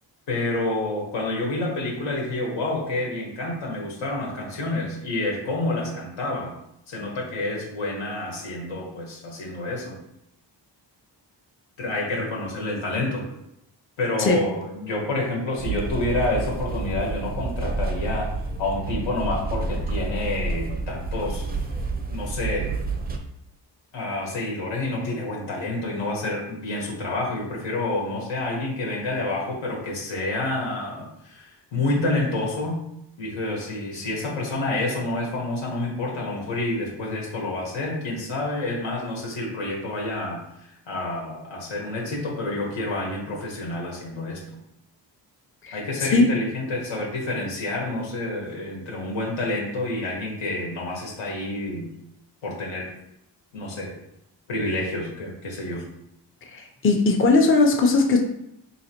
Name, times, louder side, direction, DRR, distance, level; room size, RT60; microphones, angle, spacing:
voice 1, 0.3-6.6 6.9-10.0 11.8-13.3 14.0-18.3 18.6-21.5 22.1-22.7 23.9-32.8 33.2-44.4 45.7-51.9 52.4-52.9 53.5-53.9 54.5-55.8, left 2 dB, 90° left, -2 dB, 1.3 m, -28 dB
sound 1, 15.6-23.2, right 3 dB, 25° right, 0.4 m, -29 dB
voice 2, 45.6-46.3 56.5-58.2, left 3 dB, 30° left, 2 dB, 0.6 m, -19 dB
4.0 x 2.8 x 2.9 m, 0.78 s
cardioid pair, 85°, 44 cm